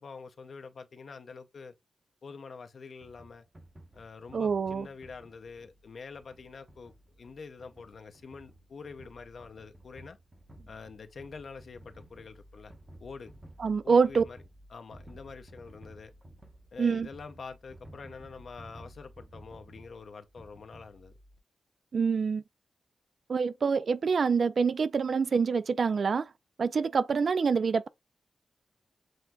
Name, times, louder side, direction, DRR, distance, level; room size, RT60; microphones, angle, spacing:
voice 1, 0.0-1.7 2.2-3.5 3.9-10.2 10.7-12.7 13.0-13.3 13.8-14.4 14.7-16.1 16.7-21.1, left 5 dB, 65° left, 0.6 m, -46 dB
sound 1, 3.0-21.4, right 1 dB, 25° right, 0.9 m, -54 dB
voice 2, 4.3-4.9 13.6-14.2 16.8-17.1 21.9-22.4 23.3-26.3 26.6-27.9, right 5 dB, 60° right, 0.3 m, -26 dB
7.5 x 2.6 x 2.2 m
wide cardioid pair, 105°, 0 cm